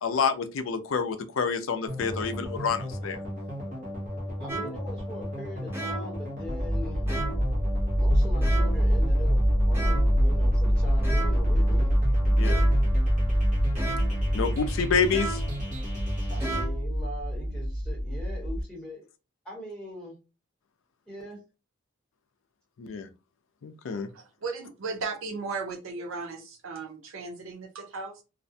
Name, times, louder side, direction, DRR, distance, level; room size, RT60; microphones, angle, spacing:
voice 1, 0.0-3.2 12.3-12.6 14.3-15.4 22.8-23.1 23.6-24.1, left 5 dB, 70° left, 0.4 m, -28 dB
sound 1, 1.9-16.6, equal, 40° right, 0.8 m, -36 dB
voice 2, 4.2-7.0 8.0-11.9 16.3-19.1 19.4-20.2 21.1-21.4, left 1 dB, 5° left, 0.9 m, -41 dB
sound 2, 4.5-4.9 5.7-6.2 7.1-7.5 8.4-8.9 9.7-10.2 11.0-11.6 12.4-12.9 13.8-14.2 15.1-15.6 16.4-16.9, right 3 dB, 10° right, 0.4 m, -35 dB
sound 3, 6.4-18.6, equal, 35° left, 0.7 m, -25 dB
voice 3, 24.1-28.2, right 4 dB, 75° right, 0.6 m, -36 dB
2.4 x 2.1 x 2.6 m
head